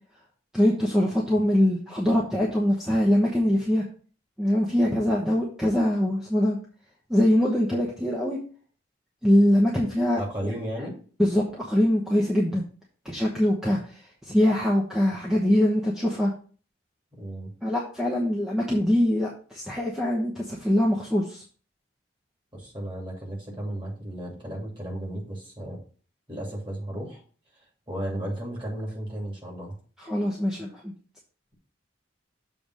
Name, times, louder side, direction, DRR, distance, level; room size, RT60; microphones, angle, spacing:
voice 1, 0.5-3.8 4.4-6.6 7.1-8.4 9.2-10.5 11.2-12.6 13.0-14.0 14.2-16.3 17.6-21.4 30.0-30.9, left 1 dB, 5° right, -4 dB, 1.0 m, -23 dB
voice 2, 10.2-11.0 17.1-17.5 22.5-25.8 26.3-27.2 27.9-29.8, right 1 dB, 25° right, -2 dB, 2.6 m, -34 dB
7.1 x 3.4 x 6.3 m, 0.41 s
head